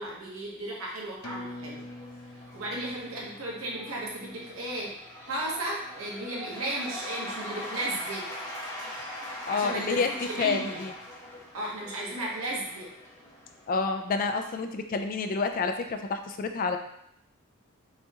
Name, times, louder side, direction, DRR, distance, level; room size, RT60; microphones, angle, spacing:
voice 1, 0.0-1.8 2.5-4.9 5.3-8.3 9.5-10.0 10.3-10.8 11.5-12.9, right 1 dB, 80° right, -3 dB, 1.1 m, -34 dB
Cheering / Applause / Crowd, 1.0-14.4, left 1 dB, 15° left, 1.1 m, -42 dB
sound 1, 1.2-6.2 6.5-6.6, left 2 dB, 90° left, 0.5 m, -47 dB
voice 2, 9.5-10.1 10.4-10.9 13.7-16.8, left 4 dB, 40° left, 6 dB, 0.3 m, -28 dB
5.3 x 2.9 x 2.4 m, 0.75 s
head